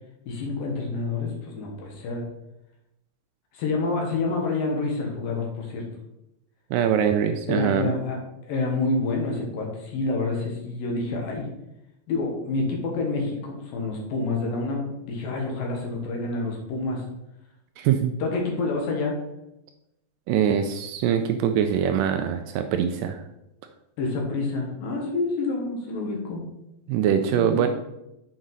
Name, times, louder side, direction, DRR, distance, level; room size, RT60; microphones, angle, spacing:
voice 1, 0.3-2.2 3.5-5.8 7.5-8.2 8.5-11.5 12.1-17.0 18.2-19.2 24.0-26.4 27.3-27.7, left 3 dB, 75° left, 0 dB, 3.0 m, -28 dB
voice 2, 6.7-8.0 17.8-18.1 20.3-23.2 26.9-27.7, right 8 dB, 80° right, 7 dB, 2.0 m, -23 dB
7.5 x 4.9 x 4.0 m, 0.88 s
omnidirectional pair, 4.1 m